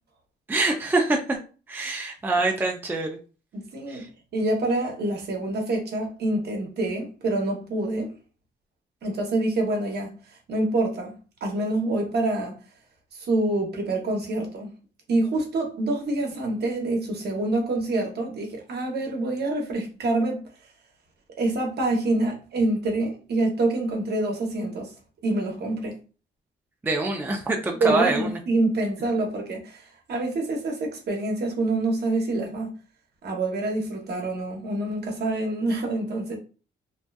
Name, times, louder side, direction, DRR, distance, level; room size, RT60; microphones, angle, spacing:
voice 1, 0.5-1.4 1.7-3.2 3.9-4.1 26.8-28.4, right 3 dB, 10° right, 0.4 m, -25 dB
voice 2, 3.5-4.0 4.3-8.2 9.0-10.1 10.5-12.6 13.1-14.7 15.1-20.4 21.4-24.9 25.2-26.0 27.8-32.7 33.2-36.4, right 2 dB, 55° right, 0.9 m, -26 dB
2.6 x 2.2 x 2.2 m
cardioid pair, 90°, 20 cm